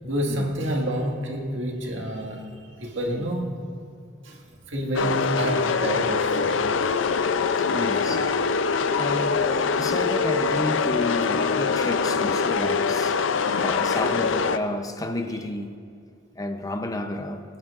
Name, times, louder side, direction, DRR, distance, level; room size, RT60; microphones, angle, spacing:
voice 1, 0.0-3.6 4.2-6.8, right 1 dB, 85° right, 1.9 m, -29 dB
sound 1, 4.9-14.6, left 5 dB, 75° left, 0.5 m, -24 dB
voice 2, 7.6-8.6 8.9-15.8 16.4-17.4, left 1 dB, 20° left, 0.6 m, -31 dB
22.5 x 11.0 x 2.5 m
head